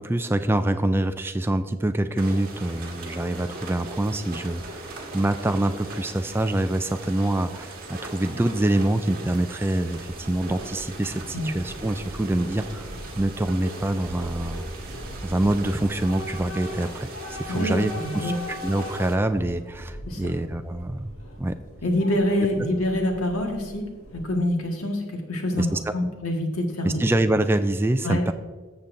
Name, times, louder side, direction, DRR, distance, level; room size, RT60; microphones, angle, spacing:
voice 1, 0.0-4.9 5.1-14.6 15.2-21.1 21.4-21.6 25.6-25.9 26.8-28.3, right 1 dB, 10° right, 9 dB, 0.3 m, -25 dB
sound 1, 2.2-19.1, right 2 dB, 45° right, 1.5 m, -40 dB
Train / Subway metro underground, 9.8-24.6, left 1 dB, 70° left, 1.7 m, -40 dB
voice 2, 17.5-18.4 20.1-20.3 21.8-23.8 24.1-27.1 28.0-28.2, left 1 dB, 90° left, 2 dB, 1.6 m, -26 dB
14.0 x 7.1 x 2.6 m, 1.4 s
head